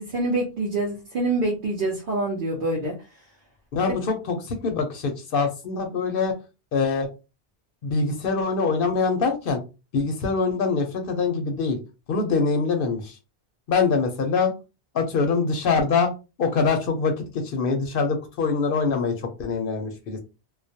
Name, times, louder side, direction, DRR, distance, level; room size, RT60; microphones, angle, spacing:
voice 1, 0.0-2.9, right 2 dB, 55° right, -3 dB, 0.7 m, -26 dB
voice 2, 3.7-6.3 6.7-7.1 7.8-9.6 9.9-11.8 12.1-13.2 13.7-14.5 14.9-16.1 16.4-19.1 19.4-20.2, left 4 dB, 65° left, 4 dB, 0.7 m, -24 dB
2.3 x 2.0 x 2.6 m, 0.29 s
omnidirectional pair, 1.1 m